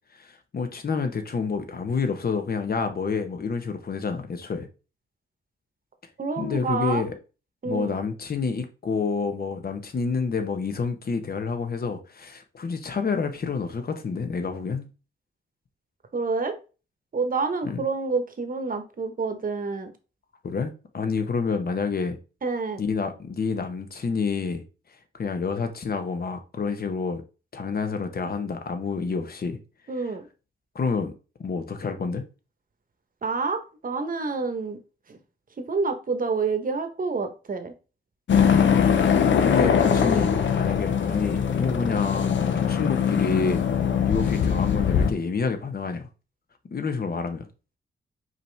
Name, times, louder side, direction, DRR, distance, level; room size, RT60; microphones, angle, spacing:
voice 1, 0.2-4.7 6.4-7.1 7.6-14.9 17.6-17.8 20.4-22.2 22.8-24.6 25.1-27.2 27.5-29.6 30.7-31.1 31.4-32.2 39.4-43.6 44.0-46.0 46.7-47.5, left 5 dB, 50° left, 1.0 m, -28 dB
voice 2, 6.2-7.0 7.6-8.0 16.1-16.6 17.1-19.9 22.4-22.8 29.9-30.3 33.2-34.8 35.1-35.2 35.6-37.7, right 4 dB, 45° right, 1.0 m, -28 dB
sound 1, 38.3-45.1, left 7 dB, 65° left, 0.7 m, -22 dB
5.0 x 2.9 x 3.3 m
cardioid pair, 70°, 21 cm